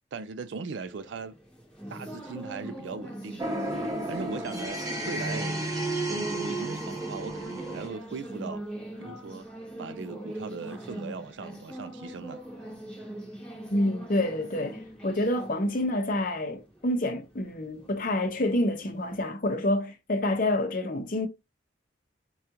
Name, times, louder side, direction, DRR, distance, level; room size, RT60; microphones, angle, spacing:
voice 1, 0.1-1.3 1.9-3.5 4.1-5.6 6.1-8.6 9.0-9.4 9.8-12.4, right 4 dB, 75° right, 0.4 m, -39 dB
sound 1, 0.9-19.3, right 1 dB, 5° left, 1.0 m, -41 dB
sound 2, 3.4-7.9, right 1 dB, 20° right, 0.7 m, -32 dB
voice 2, 13.7-21.3, left 1 dB, 45° left, 0.7 m, -28 dB
4.9 x 2.3 x 2.8 m
head